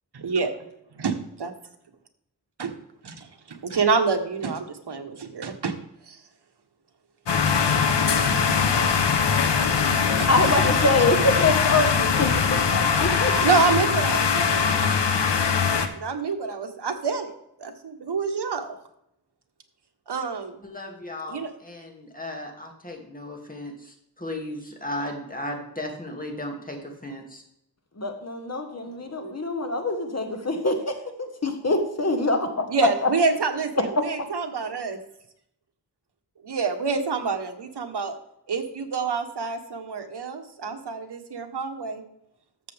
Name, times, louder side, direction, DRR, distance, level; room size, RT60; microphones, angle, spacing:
voice 1, 0.1-0.5 1.0-1.1 1.4-1.5 2.6-2.7 3.0-5.7 6.1-6.2 10.2-10.3 13.4-14.7 15.9-17.3 17.6-18.8 20.1-20.6 21.3-21.5 29.2-29.3 32.7-35.0 36.4-38.2 38.5-42.0, right 4 dB, 70° right, 6 dB, 1.3 m, -27 dB
sound 1, 7.3-15.9, left 6 dB, 80° left, 1.0 m, -22 dB
voice 2, 10.3-13.4 28.0-32.5 33.0-33.1, left 2 dB, 40° left, 5 dB, 1.4 m, -25 dB
voice 3, 20.6-27.4, left 1 dB, 20° left, 1 dB, 2.4 m, -36 dB
13.0 x 7.1 x 3.5 m, 0.76 s
wide cardioid pair, 70°, 41 cm